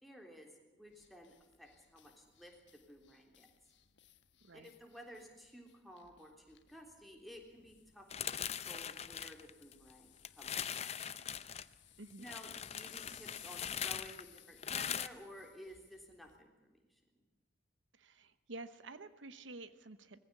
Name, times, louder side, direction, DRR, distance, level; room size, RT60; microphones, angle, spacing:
voice 1, 0.0-3.5 4.5-11.0 12.2-17.2, equal, ahead, 1 dB, 3.4 m, -55 dB
sound 1, 0.9-16.4, left 11 dB, 75° left, 1.3 m, -63 dB
sound 2, 8.1-9.9 10.2-11.6 12.2-15.1, left 9 dB, 35° left, 0.7 m, -41 dB
voice 2, 17.9-20.2, right 2 dB, 85° right, 13 dB, 1.0 m, -50 dB
21.0 x 15.0 x 8.7 m, 1.2 s
head